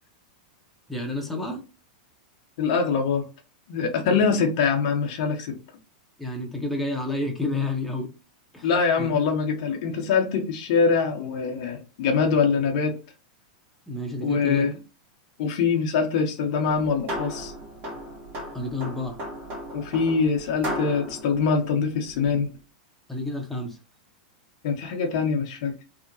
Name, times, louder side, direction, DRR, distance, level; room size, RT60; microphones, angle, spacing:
voice 1, 0.9-1.6 4.0-4.4 6.2-8.1 8.5-8.7 9.0-9.1 13.9-14.7 18.5-19.2 23.1-23.8, left 2 dB, 5° left, 0.8 m, -30 dB
voice 2, 2.6-3.3 3.7-5.6 8.6-13.0 14.2-14.8 15.4-17.5 19.7-22.5 24.6-25.7, left 5 dB, 55° left, 0.7 m, -24 dB
sound 1, 16.6-22.5, equal, 35° right, 0.9 m, -36 dB
2.7 x 2.1 x 2.7 m
figure-of-eight pair, 95°, 4 cm